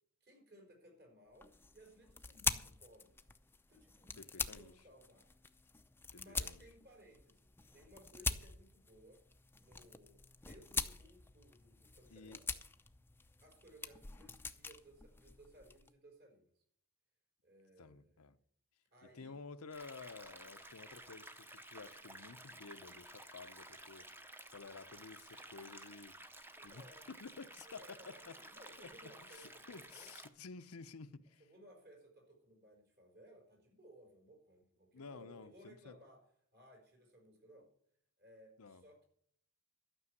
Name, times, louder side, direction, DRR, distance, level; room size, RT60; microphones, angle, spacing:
voice 1, 0.2-3.2 3.7-5.3 6.1-9.2 9.6-12.5 13.4-16.5 17.4-18.2 18.9-19.4 26.6-27.1 27.6-30.2 31.4-36.2 36.5-37.7 38.2-39.1, right 1 dB, 50° right, 5.2 m, -61 dB
sound 1, 1.3-15.9, left 4 dB, 10° left, 0.6 m, -44 dB
voice 2, 4.2-4.7 6.1-6.6 12.1-12.4 17.8-18.4 19.1-24.1 24.5-26.2 26.6-26.8 27.1-28.4 28.8-31.4 34.9-36.0 38.6-38.8, left 4 dB, 85° left, 0.8 m, -52 dB
sound 2, 19.7-30.3, right 1 dB, 10° right, 0.9 m, -54 dB
12.5 x 6.3 x 9.6 m
head